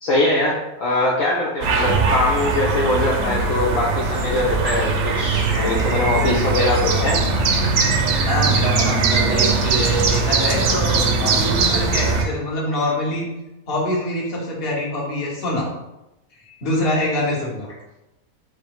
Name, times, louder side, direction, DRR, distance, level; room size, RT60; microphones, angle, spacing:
voice 1, 0.0-7.2, left 2 dB, 65° left, -4 dB, 1.0 m, -22 dB
sound 1, 1.6-12.2, right 4 dB, 65° right, 0.8 m, -20 dB
voice 2, 8.2-13.3 13.7-15.7 16.6-17.8, left 1 dB, 40° left, -4 dB, 1.3 m, -24 dB
4.9 x 2.1 x 4.6 m, 0.96 s
omnidirectional pair, 1.6 m